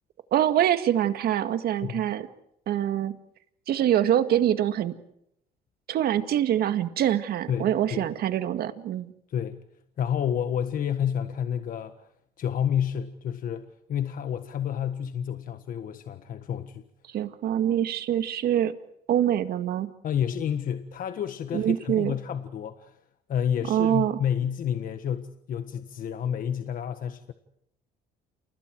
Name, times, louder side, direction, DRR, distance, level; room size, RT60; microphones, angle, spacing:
voice 1, 0.3-2.3 2.7-3.2 3.7-4.9 5.9-9.1 17.1-18.7 19.1-19.9 21.5-22.1 23.7-24.2, right 11 dB, 65° right, 10 dB, 2.1 m, -24 dB
voice 2, 7.5-8.1 9.3-9.7 10.0-12.1 12.4-16.8 20.0-23.0 23.3-27.3, left 9 dB, 55° left, 9 dB, 1.5 m, -30 dB
30.0 x 29.0 x 4.8 m, 0.75 s
cardioid pair, 110°, 17 cm